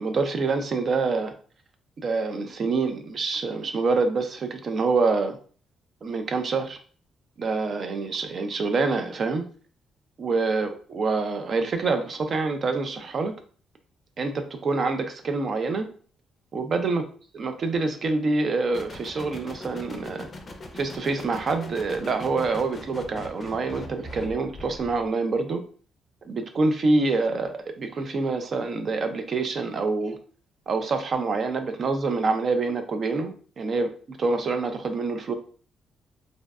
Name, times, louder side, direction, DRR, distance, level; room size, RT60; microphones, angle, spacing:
voice 1, 0.0-1.3 2.0-5.4 6.0-6.8 7.4-9.5 10.2-13.3 14.2-15.9 16.5-17.0 17.3-20.3 20.7-25.6 26.2-30.2 30.7-35.3, right 3 dB, 50° right, 7 dB, 0.4 m, -26 dB
sound 1, 18.7-25.1, left 1 dB, 40° left, 0.4 m, -41 dB
2.6 x 2.1 x 2.3 m, 0.43 s
cardioid pair, 90°, 0 cm